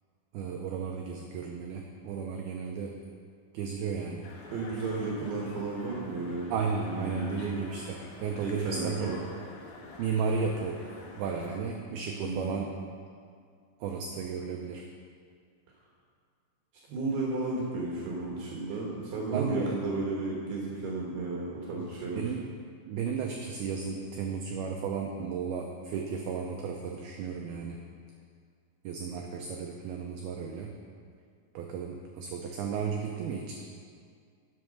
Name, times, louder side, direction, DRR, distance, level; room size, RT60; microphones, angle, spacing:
voice 1, 0.3-3.0 3.5-4.3 6.5-9.2 10.0-12.7 13.8-14.8 19.1-19.8 21.7-21.9 22.2-22.5 22.9-27.9 28.8-30.7 31.5-33.6, right 5 dB, 85° right, 1 dB, 2.1 m, -34 dB
sound 1, 4.2-11.6, left 3 dB, 65° left, 2.6 m, -48 dB
voice 2, 4.5-6.5 6.8-7.4 8.4-9.2 12.2-12.6 16.9-22.2, right 3 dB, 70° right, -3 dB, 3.1 m, -33 dB
9.3 x 8.1 x 6.4 m, 2.2 s
omnidirectional pair, 5.3 m